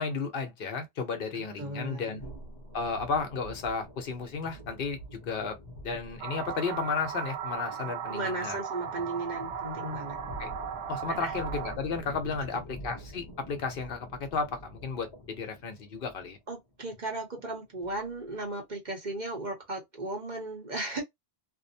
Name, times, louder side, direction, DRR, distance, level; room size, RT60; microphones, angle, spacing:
voice 1, 0.0-2.2 2.7-5.6 5.8-8.6 10.4-10.5 10.9-16.4, left 4 dB, 55° left, 0.9 m, -33 dB
voice 2, 1.3-2.1 8.1-10.2 11.1-11.3 12.5-12.6 16.5-21.0, right 2 dB, 45° right, 1.0 m, -36 dB
sound 1, 2.2-18.4, equal, 30° left, 0.6 m, -47 dB
sound 2, 6.2-11.8, right 8 dB, 85° right, 0.9 m, -37 dB
2.6 x 2.0 x 2.6 m
omnidirectional pair, 1.2 m